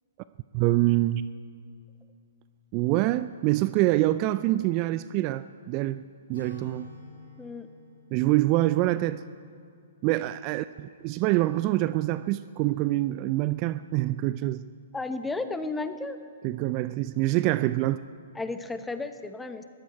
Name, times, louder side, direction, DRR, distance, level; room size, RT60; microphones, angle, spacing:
voice 1, 0.5-1.3 2.7-6.0 6.3-6.9 8.1-9.2 10.0-14.6 16.4-18.0, right 16 dB, 35° right, 15 dB, 0.3 m, -25 dB
Acoustic guitar, 6.3-10.1, left 4 dB, 80° left, 3.2 m, -50 dB
voice 2, 14.9-16.2 18.3-19.6, left 3 dB, 10° left, 9 dB, 0.9 m, -33 dB
21.5 x 14.5 x 4.6 m, 2.3 s
hypercardioid pair, 125°, 0 cm